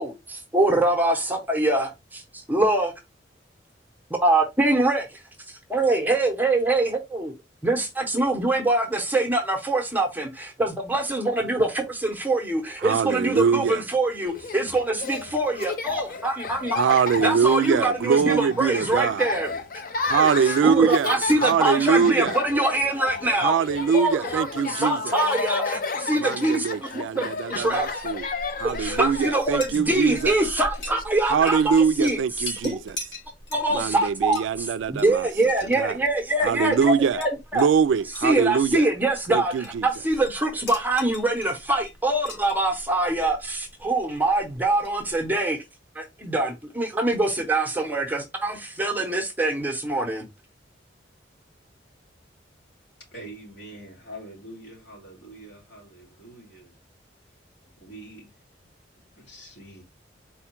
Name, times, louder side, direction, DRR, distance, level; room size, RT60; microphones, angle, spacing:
voice 1, 0.5-1.9 2.5-2.9 4.2-5.2 5.5-7.3 7.6-19.5 20.1-23.5 23.9-27.9 28.6-32.4 32.7-32.8 33.5-37.7 38.2-45.6 46.0-50.2, right 2 dB, 10° right, 0.7 m, -24 dB
voice 2, 12.8-13.8 16.8-19.3 20.1-22.4 23.4-25.1 26.1-28.3 28.6-30.4 31.3-32.9 33.7-35.3 35.8-35.9 36.4-37.2 37.5-38.9 39.3-39.9, right 6 dB, 80° right, 0.3 m, -23 dB
Laughter, 14.3-31.0, left 4 dB, 50° left, 0.5 m, -33 dB
Chink clink, 27.7-45.4, left 2 dB, 85° left, 2.0 m, -43 dB
voice 3, 53.1-56.8 57.8-58.3 59.2-59.8, right 1 dB, 65° left, 2.6 m, -44 dB
4.3 x 2.3 x 4.3 m
head